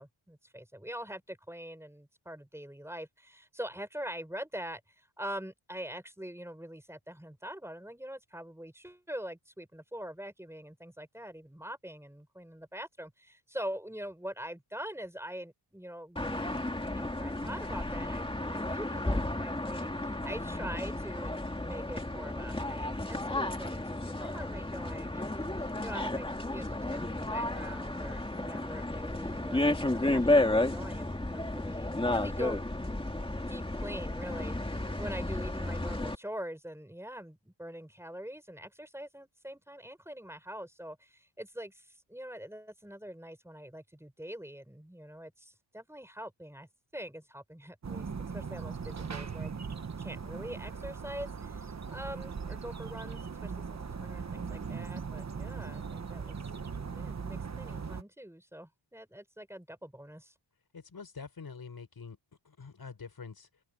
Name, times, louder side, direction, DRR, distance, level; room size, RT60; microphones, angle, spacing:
voice 1, 0.0-16.6 16.9-32.6 33.5-48.1 48.3-49.5 50.0-56.4 56.9-60.3, equal, 5° right, 6.0 m, -44 dB
sound 1, 16.2-36.2, left 1 dB, 10° left, 2.3 m, -32 dB
sound 2, 47.8-58.0, right 5 dB, 35° right, 1.2 m, -39 dB
voice 2, 60.7-62.2 62.5-63.5, left 5 dB, 45° left, 5.2 m, -45 dB
wide cardioid pair, 160°, 50 cm